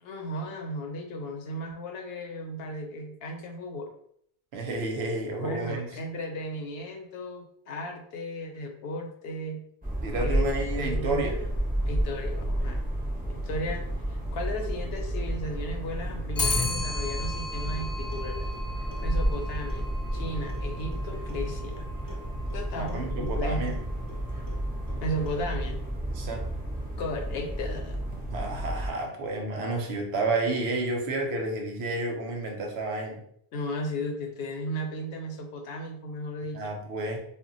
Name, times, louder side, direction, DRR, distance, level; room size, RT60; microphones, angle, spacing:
voice 1, 0.0-3.9 5.4-9.6 10.2-11.3 11.9-12.8 13.3-18.5 19.0-21.9 22.5-23.7 25.0-25.8 27.0-28.0 33.5-36.6, left 1 dB, 75° left, 3 dB, 0.8 m, -35 dB
voice 2, 4.5-5.9 10.0-11.4 22.8-23.8 26.1-26.5 28.3-33.2 36.5-37.2, right 2 dB, 90° right, 2 dB, 0.9 m, -30 dB
sound 1, 9.8-28.9, right 1 dB, 10° right, 0.6 m, -31 dB
Clock, 16.4-25.7, left 3 dB, 35° left, 0.3 m, -37 dB
2.1 x 2.1 x 3.8 m, 0.68 s
omnidirectional pair, 1.0 m